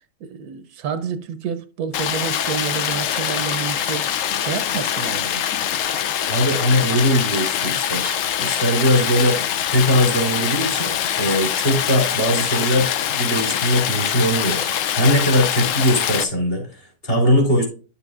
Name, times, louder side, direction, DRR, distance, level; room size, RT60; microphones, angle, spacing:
voice 1, 0.2-4.1 4.4-5.4, right 7 dB, 75° right, 1.1 m, -29 dB
Stream, 1.9-16.2, left 9 dB, 65° left, 0.9 m, -23 dB
voice 2, 6.3-9.4 9.7-17.7, equal, 35° left, 3.4 m, -20 dB
10.5 x 6.9 x 2.4 m
omnidirectional pair, 1.6 m